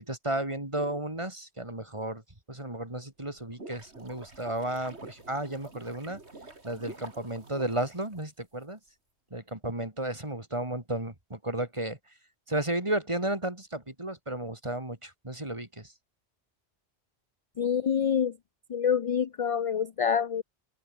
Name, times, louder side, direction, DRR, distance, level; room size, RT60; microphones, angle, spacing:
voice 1, 0.0-2.2 2.5-6.2 6.6-8.8 9.3-12.0 12.5-15.9, right 1 dB, 25° right, 3.4 m, -33 dB
sound 1, 3.3-8.6, right 2 dB, 80° right, 3.9 m, -48 dB
voice 2, 17.6-18.4 18.7-20.4, left 7 dB, 45° left, 0.4 m, -26 dB
open air
omnidirectional pair, 1.1 m